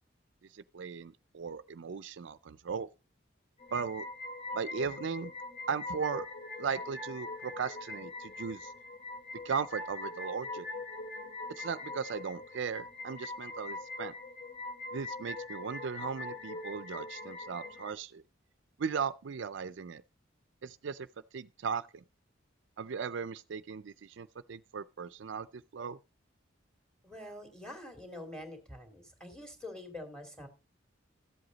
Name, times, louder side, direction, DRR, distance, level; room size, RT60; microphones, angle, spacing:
voice 1, 0.5-2.9 3.7-4.0 4.5-5.3 5.7-6.3 6.6-8.7 9.4-10.6 11.6-14.1 14.9-18.2 18.8-20.0 20.6-22.0 22.8-26.0, right 6 dB, 65° right, 0.4 m, -37 dB
sound 1, 3.6-17.9, left 2 dB, 30° left, 2.2 m, -42 dB
voice 2, 27.0-30.5, left 1 dB, 5° left, 2.7 m, -45 dB
13.5 x 7.9 x 3.9 m
head